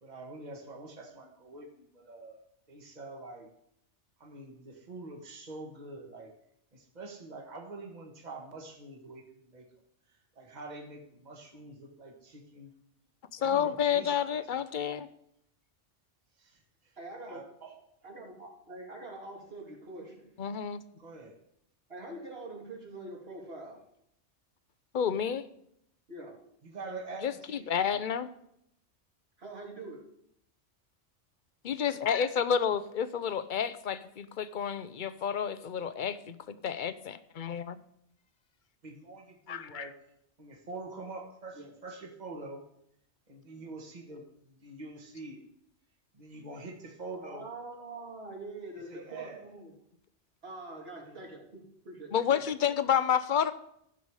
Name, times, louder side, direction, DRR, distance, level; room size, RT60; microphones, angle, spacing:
voice 1, 0.0-3.5 4.2-6.3 6.7-9.7 10.1-12.7 13.4-14.3 16.4-16.9 17.3-17.8 21.0-21.3 26.6-28.0 38.8-39.9 40.4-42.6 43.3-45.4 46.1-47.5 48.9-49.5 51.0-51.3, right 3 dB, 35° right, 2 dB, 1.6 m, -45 dB
voice 2, 13.3-15.1 20.4-20.8 24.9-25.4 27.2-28.3 31.6-37.8 39.5-39.9 52.1-53.5, left 8 dB, 55° left, 14 dB, 0.6 m, -30 dB
voice 3, 17.0-17.4 18.0-20.3 21.9-23.8 26.1-26.4 29.4-30.1 41.5-41.7 47.2-49.7 50.4-52.4, right 2 dB, 55° right, -1 dB, 2.6 m, -44 dB
14.5 x 7.0 x 4.8 m, 0.74 s
omnidirectional pair, 1.2 m